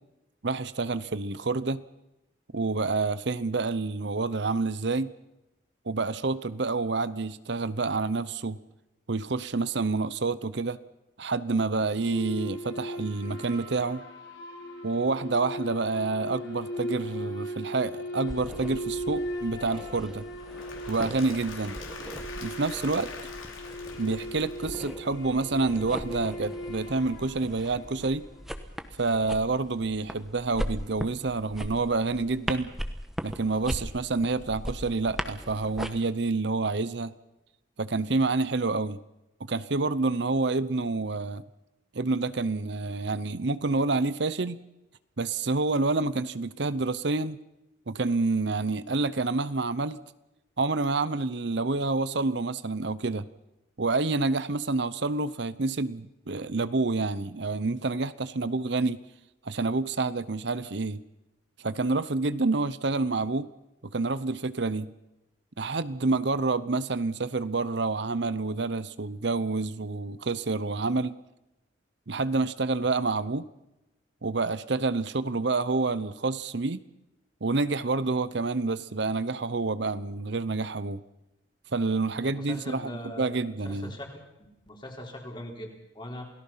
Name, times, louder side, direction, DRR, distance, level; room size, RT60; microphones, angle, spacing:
voice 1, 0.4-1.8 2.5-5.1 5.9-8.6 9.1-10.8 11.2-14.0 14.8-20.3 20.9-21.8 22.4-23.1 24.0-28.2 29.0-32.7 33.2-37.1 37.8-39.0 39.4-41.4 41.9-44.6 45.2-47.4 47.9-50.0 50.6-53.3 53.8-59.0 59.4-61.0 61.6-63.5 63.9-64.9 65.6-71.2 72.1-73.5 74.2-76.8 77.4-81.0 81.7-84.0, right 3 dB, 60° right, 15 dB, 0.8 m, -28 dB
sound 1, 11.9-28.5, equal, 60° left, 4.5 m, -38 dB
sound 2, 18.3-35.9, equal, ahead, 1.2 m, -39 dB
Applause / Crowd, 20.2-25.2, left 4 dB, 85° left, 4.3 m, -44 dB
voice 2, 82.2-83.4 83.7-84.1 84.6-86.2, left 1 dB, 25° left, 1 dB, 3.9 m, -41 dB
28.5 x 18.0 x 5.7 m, 0.92 s
head